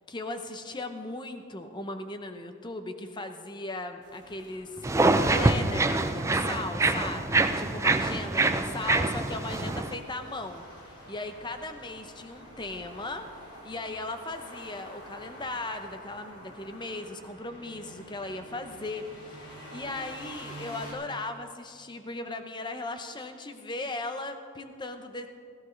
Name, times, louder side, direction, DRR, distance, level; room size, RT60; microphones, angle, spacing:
voice 1, 0.1-13.2 13.6-25.3, left 2 dB, 20° left, 7 dB, 0.7 m, -37 dB
sound 1, 4.0-20.9, equal, 90° left, 3.4 m, -48 dB
sound 2, 4.8-9.9, right 2 dB, 15° right, 0.4 m, -25 dB
16.5 x 15.0 x 3.2 m, 2.3 s
head